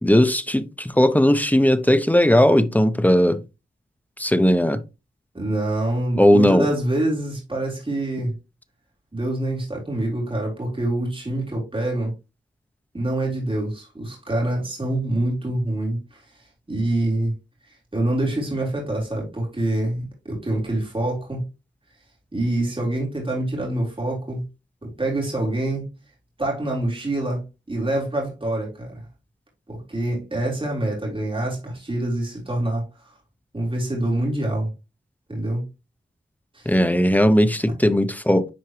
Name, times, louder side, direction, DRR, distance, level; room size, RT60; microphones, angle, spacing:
voice 1, 0.0-3.4 4.2-4.8 6.2-6.7 36.7-38.5, equal, 10° left, 0.7 m, -17 dB
voice 2, 5.3-8.3 9.1-12.1 12.9-16.2 16.7-17.3 17.9-21.4 22.3-24.4 24.8-25.8 26.4-27.4 27.7-29.0 29.7-32.8 33.5-34.7 35.3-35.6 36.5-36.7, right 1 dB, 25° right, 3.7 m, -25 dB
10.5 x 4.6 x 3.2 m
wide cardioid pair, 90°, 20 cm